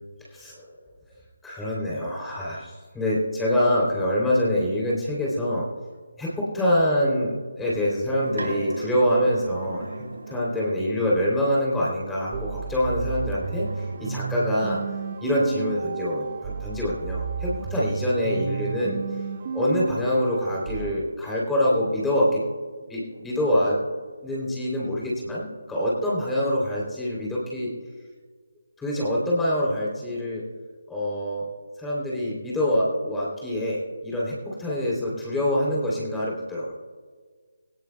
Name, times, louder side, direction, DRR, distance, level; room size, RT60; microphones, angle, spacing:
voice 1, 0.3-0.8 1.4-5.7 6.2-14.8 15.2-19.2 19.5-22.4 22.9-23.8 24.2-27.7 28.8-30.4 30.9-31.5 31.8-36.7, equal, 5° left, -6 dB, 3.0 m, -25 dB
sound 1, 7.8-11.1 13.0-15.4 17.3-22.5 23.1-24.8, right 2 dB, 65° right, 3.2 m, -41 dB
sound 2, 12.3-20.9, right 6 dB, 30° right, 0.8 m, -32 dB
23.5 x 17.5 x 2.2 m, 1.6 s
figure-of-eight pair, 150°, 0 cm